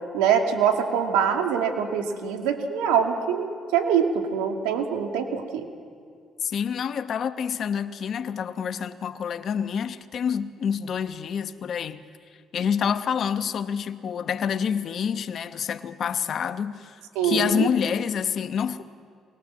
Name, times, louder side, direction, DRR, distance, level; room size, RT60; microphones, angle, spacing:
voice 1, 0.1-5.6 17.2-17.7, right 7 dB, 85° right, 2.2 m, -24 dB
voice 2, 6.4-12.0 12.5-18.8, left 7 dB, 60° left, 1.0 m, -27 dB
24.5 x 20.5 x 7.5 m
supercardioid pair, 60°, 0 cm